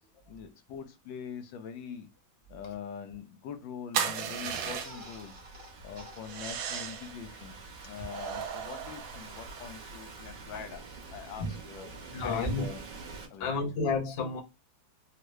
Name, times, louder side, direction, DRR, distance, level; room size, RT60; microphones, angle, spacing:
voice 1, 0.3-2.1 2.5-5.4 5.8-11.9 12.2-12.8 13.3-13.6, left 7 dB, 75° left, 1.3 m, -43 dB
sound 1, 3.9-5.2 6.2-7.2 8.1-9.7, right 8 dB, 75° right, 1.3 m, -35 dB
Thunderstorm / Rain, 4.2-13.2, right 3 dB, 55° right, 1.0 m, -47 dB
sound 2, 4.5-7.3 7.7-7.8 8.0-8.2, right 2 dB, 20° right, 0.9 m, -51 dB
voice 2, 12.1-12.7 13.4-14.4, left 3 dB, 60° left, 0.6 m, -31 dB
3.7 x 2.1 x 3.0 m
omnidirectional pair, 2.2 m